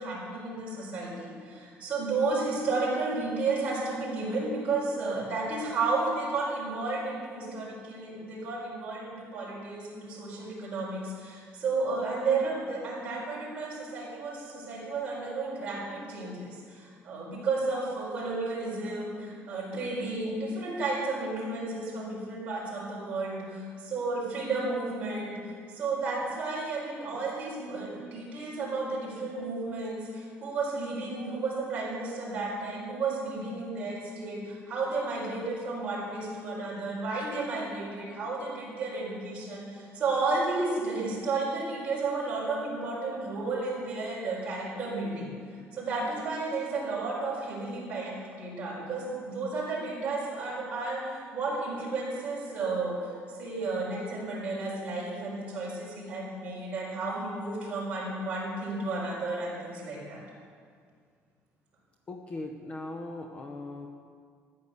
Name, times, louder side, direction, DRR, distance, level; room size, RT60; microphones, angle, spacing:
voice 1, 0.0-25.4 25.7-45.3 45.7-60.2, right 3 dB, 30° right, -5 dB, 4.6 m, -32 dB
voice 2, 62.1-63.9, left 2 dB, 25° left, 4 dB, 0.7 m, -39 dB
13.5 x 9.5 x 6.6 m, 2.1 s
cardioid pair, 180°, 5 cm